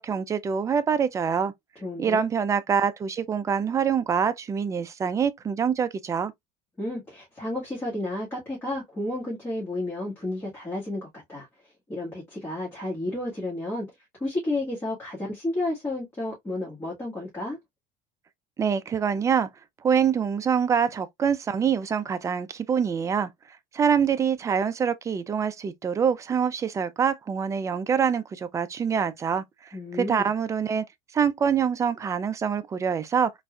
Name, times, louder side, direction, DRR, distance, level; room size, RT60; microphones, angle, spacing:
voice 1, 0.0-1.5 2.0-6.3 18.6-19.5 19.8-23.3 23.7-29.4 30.0-30.8 31.1-33.3, right 7 dB, 20° right, 0.4 m, -25 dB
voice 2, 1.7-2.2 6.8-11.5 11.9-13.9 14.2-17.6 29.7-30.3, left 1 dB, 15° left, 1.6 m, -31 dB
3.9 x 2.6 x 2.3 m
cardioid pair, 150°, 16 cm